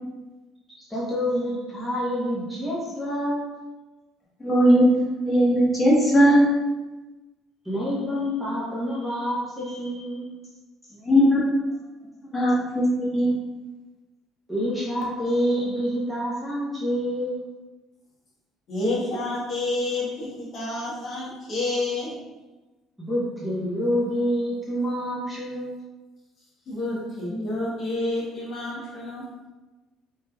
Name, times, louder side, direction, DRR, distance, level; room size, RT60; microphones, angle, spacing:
voice 1, 0.8-3.6 7.6-10.3 14.5-17.5 23.0-25.8, equal, 5° right, -7 dB, 0.9 m, -27 dB
voice 2, 4.4-4.9 5.2-6.5 11.0-11.6 12.3-13.3, equal, 20° left, -6 dB, 1.3 m, -18 dB
voice 3, 18.7-22.2 26.4-29.3, left 2 dB, 45° left, -5 dB, 1.1 m, -29 dB
4.6 x 3.3 x 2.3 m, 1.1 s
cardioid pair, 140°, 0 cm